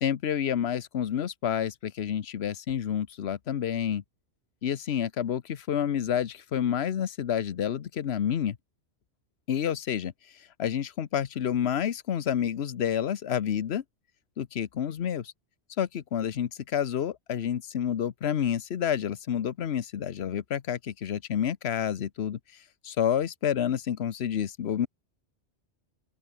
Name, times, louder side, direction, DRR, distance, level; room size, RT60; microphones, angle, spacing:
voice 1, 0.0-4.0 4.6-8.6 9.5-10.1 10.6-13.8 14.4-15.3 15.8-22.4 22.8-24.9, left 9 dB, 70° left, 1.1 m, -29 dB
open air
omnidirectional pair, 1.2 m